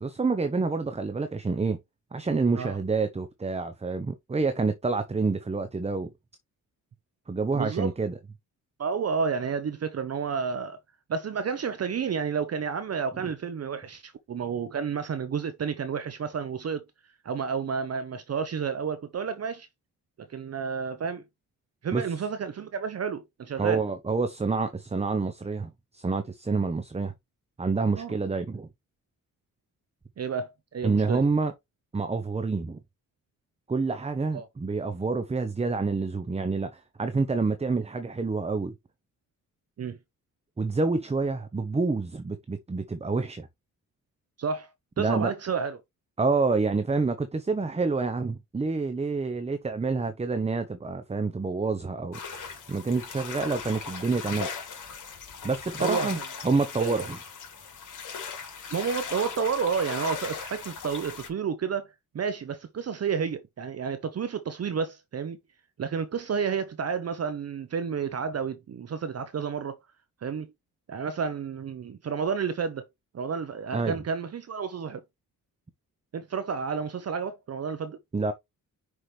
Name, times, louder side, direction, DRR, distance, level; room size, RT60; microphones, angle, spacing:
voice 1, 0.0-1.8 2.1-6.1 7.3-8.2 21.9-22.0 23.6-27.1 27.6-28.7 30.8-31.5 31.9-32.8 33.7-38.7 40.6-43.5 45.0-45.3 46.2-52.2 52.7-54.5 55.4-56.2 56.4-57.2 73.7-74.0 78.1-78.3, right 4 dB, 20° right, 0.8 m, -28 dB
voice 2, 7.5-7.9 8.8-10.8 11.1-16.8 17.2-19.7 20.3-21.2 21.8-23.8 27.9-28.1 30.2-31.2 34.3-34.5 39.8-40.0 44.4-44.7 45.0-45.8 55.8-56.2 56.8-57.1 58.7-65.4 65.8-69.8 70.2-70.5 70.9-72.8 73.1-75.0 76.1-78.0, right 6 dB, 45° right, 0.8 m, -31 dB
sound 1, 52.1-61.3, left 6 dB, 60° left, 3.0 m, -38 dB
5.9 x 4.8 x 3.3 m
cardioid pair, 90°, 35 cm